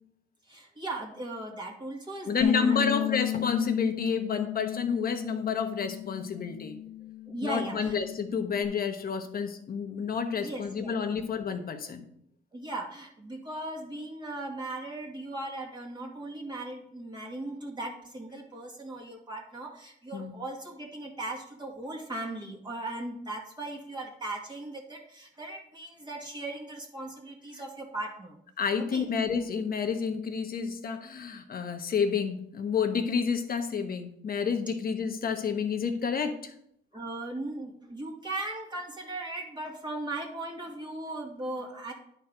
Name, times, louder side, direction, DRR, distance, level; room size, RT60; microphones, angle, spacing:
voice 1, 0.5-2.8 7.3-8.0 10.3-10.9 12.5-28.4 28.9-29.1 36.9-41.9, right 2 dB, 20° right, -1 dB, 2.2 m, -38 dB
voice 2, 2.3-6.8 7.4-12.1 20.1-20.4 28.6-36.5, left 6 dB, 50° left, 6 dB, 1.1 m, -30 dB
Bass guitar, 2.4-8.7, left 12 dB, 75° left, 1.3 m, -33 dB
10.5 x 4.5 x 5.2 m, 0.71 s
cardioid pair, 90°, 20 cm